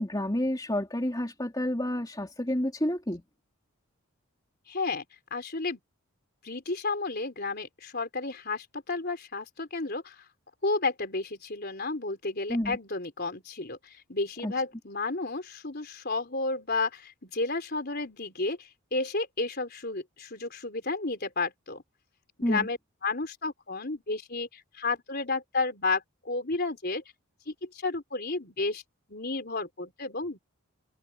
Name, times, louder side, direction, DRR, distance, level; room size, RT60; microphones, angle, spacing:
voice 1, 0.0-3.2 12.5-12.8 14.4-14.5 22.4-22.7, left 1 dB, 15° left, 3.3 m, -29 dB
voice 2, 4.7-5.0 5.3-5.8 6.4-10.3 10.6-21.8 22.4-27.0 27.5-28.8 29.1-30.4, left 3 dB, 45° left, 4.1 m, -32 dB
head